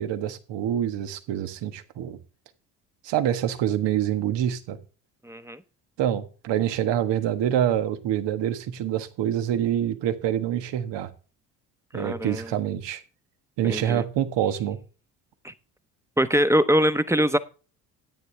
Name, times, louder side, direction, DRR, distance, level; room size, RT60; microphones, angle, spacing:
voice 1, 0.0-2.2 3.0-4.8 6.0-11.1 11.9-13.0 13.6-14.8, right 10 dB, 65° right, 9 dB, 1.5 m, -26 dB
voice 2, 5.2-5.6 11.9-12.5 13.6-14.0 15.4-15.5 16.2-17.4, equal, 5° right, 12 dB, 1.0 m, -23 dB
13.0 x 9.4 x 3.4 m, 0.36 s
hypercardioid pair, 55°, 47 cm